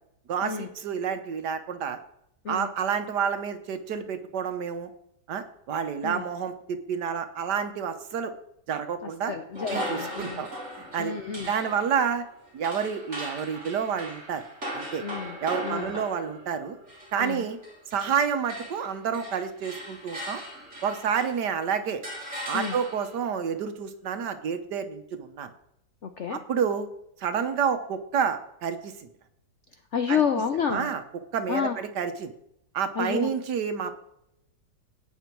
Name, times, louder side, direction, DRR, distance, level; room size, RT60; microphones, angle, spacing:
voice 1, 0.3-2.0 2.5-4.9 5.3-8.3 8.7-9.3 9.7-10.5 10.9-11.2 11.5-12.2 12.5-14.4 14.7-15.0 15.4-16.7 17.1-17.6 17.9-20.4 20.8-22.0 22.5-25.5 26.3-26.9 27.2-29.1 30.1-30.2 30.7-31.0 31.3-32.3 32.7-33.9, right 7 dB, 85° right, 8 dB, 1.7 m, -29 dB
voice 2, 9.3-10.4 11.0-11.5 15.0-15.4 15.6-16.0 17.2-17.4 22.5-22.8 26.0-26.4 29.9-30.9 31.5-31.8 33.0-33.3, left 7 dB, 55° left, 7 dB, 1.0 m, -29 dB
sound 1, 9.5-18.2 18.4-21.5 22.0-23.2, equal, 45° right, 4.3 m, -39 dB
14.5 x 9.4 x 4.6 m, 0.76 s
omnidirectional pair, 1.8 m